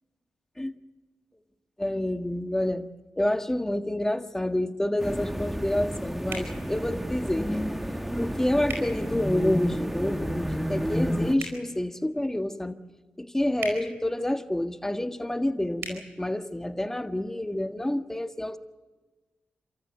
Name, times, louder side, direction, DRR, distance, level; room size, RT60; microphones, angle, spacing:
voice 1, 1.8-2.9 3.2-7.7 8.2-12.8 13.2-18.6, left 1 dB, 10° left, 8 dB, 1.6 m, -28 dB
sound 1, 5.0-11.4, equal, 5° right, 1.4 m, -31 dB
sound 2, 6.3-6.5 8.7-8.9 11.3-11.6 13.6-13.8 15.8-16.0, right 4 dB, 80° right, 4.6 m, -35 dB
28.5 x 13.5 x 8.0 m, 1.3 s
cardioid pair, 50°, 4 cm